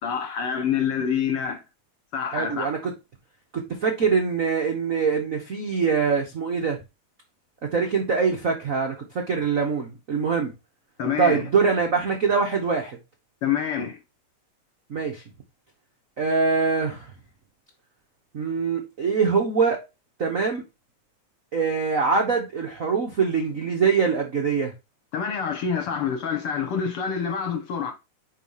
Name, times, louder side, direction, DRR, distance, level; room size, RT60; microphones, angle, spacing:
voice 1, 0.0-1.6 2.1-2.7 11.0-11.5 13.4-14.0 25.1-27.9, left 7 dB, 60° left, 1.7 m, -26 dB
voice 2, 2.3-2.9 3.5-6.8 7.6-10.5 11.2-13.0 14.9-15.2 16.2-17.0 18.3-19.8 20.2-20.6 21.5-24.7, right 5 dB, 90° right, 0.7 m, -23 dB
5.0 x 4.6 x 5.5 m
omnidirectional pair, 3.3 m